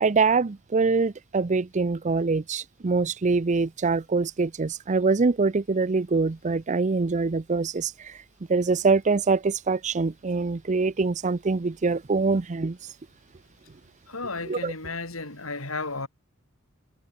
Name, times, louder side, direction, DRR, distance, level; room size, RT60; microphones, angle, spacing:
voice 1, 0.0-8.1 8.5-12.8 14.5-14.7, right 4 dB, 35° right, 0.5 m, -24 dB
voice 2, 14.1-16.1, left 3 dB, 85° left, 7.2 m, -33 dB
head